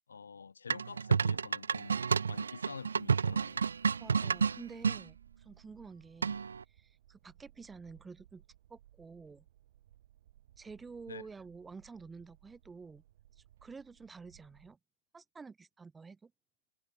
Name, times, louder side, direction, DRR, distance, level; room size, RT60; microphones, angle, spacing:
voice 1, 0.1-2.0 2.3-3.7 11.1-11.3, left 5 dB, 45° left, 3.0 m, -47 dB
sound 1, 0.7-5.0 6.2-6.6, right 6 dB, 45° right, 0.4 m, -30 dB
sound 2, 3.0-14.8, right 13 dB, 25° right, 4.7 m, -63 dB
voice 2, 4.0-6.4 6.7-8.4 8.7-9.4 10.6-13.0 13.4-14.8 15.1-16.3, right 4 dB, 5° right, 4.1 m, -50 dB
figure-of-eight pair, 165°, 0 cm